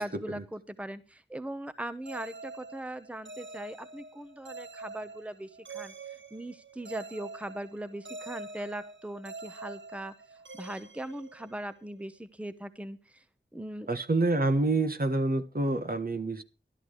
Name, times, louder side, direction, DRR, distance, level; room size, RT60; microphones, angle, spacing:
voice 1, 0.0-13.2 13.5-13.9, right 1 dB, 5° right, 12 dB, 0.9 m, -40 dB
sound 1, 2.1-11.9, right 3 dB, 80° right, 0.9 m, -46 dB
voice 2, 13.9-16.4, right 2 dB, 50° right, 9 dB, 1.3 m, -27 dB
12.5 x 11.0 x 4.8 m, 0.31 s
wide cardioid pair, 55°, 19 cm